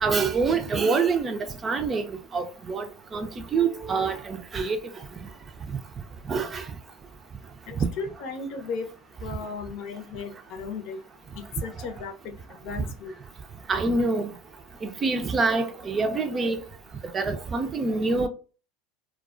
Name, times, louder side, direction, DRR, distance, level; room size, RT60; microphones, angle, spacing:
voice 1, 0.0-2.0 2.3-2.9 3.1-4.8 6.3-6.6 13.7-14.3 14.8-16.6 17.1-18.3, right 4 dB, 30° right, 0.5 m, -25 dB
voice 2, 7.7-8.9 9.2-11.0 11.3-13.1, left 4 dB, 60° left, 0.7 m, -36 dB
2.2 x 2.2 x 2.4 m
hypercardioid pair, 90°, 0 cm